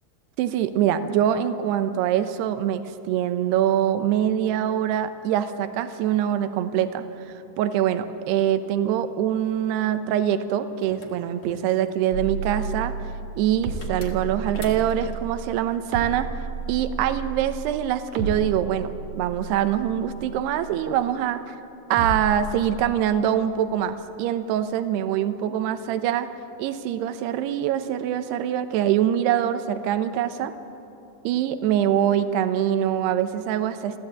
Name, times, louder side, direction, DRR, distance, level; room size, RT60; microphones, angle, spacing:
voice 1, 0.4-7.1 7.6-12.9 13.4-16.3 16.7-21.5 21.9-26.3 26.6-30.5 31.2-34.0, right 10 dB, 80° right, 10 dB, 3.0 m, -24 dB
sound 1, 10.8-12.2 13.8-15.2, left 3 dB, 40° left, 1.8 m, -43 dB
sound 2, 12.1-21.4 21.9-22.9, right 5 dB, 50° right, 2.8 m, -33 dB
28.0 x 14.0 x 8.8 m, 2.9 s
omnidirectional pair, 4.8 m